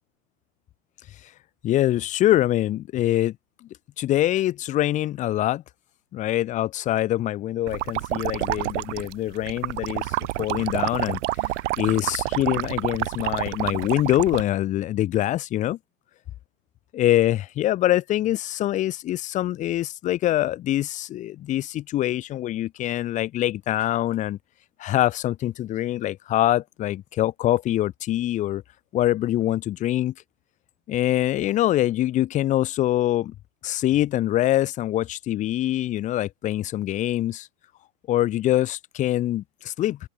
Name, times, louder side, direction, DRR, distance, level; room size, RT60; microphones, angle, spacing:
voice 1, 1.6-3.3 4.0-5.6 6.1-11.2 11.8-15.8 16.9-24.4 24.8-28.6 28.9-30.1 30.9-33.3 33.6-37.5 38.1-40.0, left 13 dB, 20° left, 0.6 m, -24 dB
sound 1, 7.7-14.4, right 17 dB, 60° right, 3.8 m, -28 dB
open air
hypercardioid pair, 130°, 41 cm